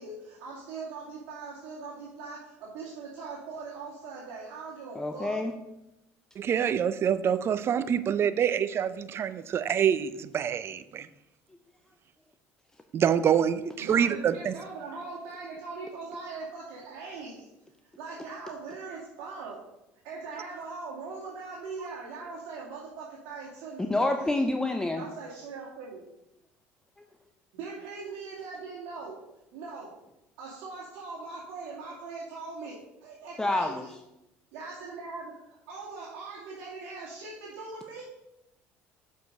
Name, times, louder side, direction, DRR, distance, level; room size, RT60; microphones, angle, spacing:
voice 1, 0.0-5.4 13.8-17.4 18.0-19.6 20.0-24.4 25.0-26.0 27.5-29.1 29.5-29.9 30.4-33.9 34.5-38.0, right 4 dB, 70° right, -6 dB, 2.3 m, -41 dB
voice 2, 4.9-5.5 23.9-25.0 33.4-33.9, left 2 dB, 10° left, 5 dB, 0.7 m, -27 dB
voice 3, 6.4-11.1 12.9-14.5, right 8 dB, 45° right, 14 dB, 0.5 m, -26 dB
6.5 x 5.1 x 5.3 m, 0.89 s
supercardioid pair, 85°, 6 cm